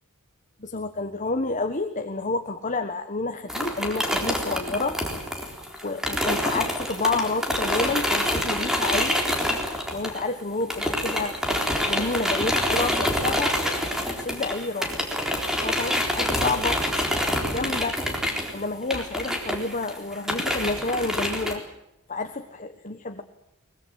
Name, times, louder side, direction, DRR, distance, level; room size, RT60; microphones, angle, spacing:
voice 1, 0.6-5.0 5.8-9.2 9.9-11.4 11.8-13.6 14.2-15.0 15.6-18.1 18.5-21.6 22.1-23.2, left 3 dB, 35° left, 7 dB, 1.3 m, -29 dB
sound 1, 3.5-10.4 10.7-21.5, equal, 5° right, 3.9 m, -26 dB
23.0 x 21.5 x 7.7 m, 0.86 s
head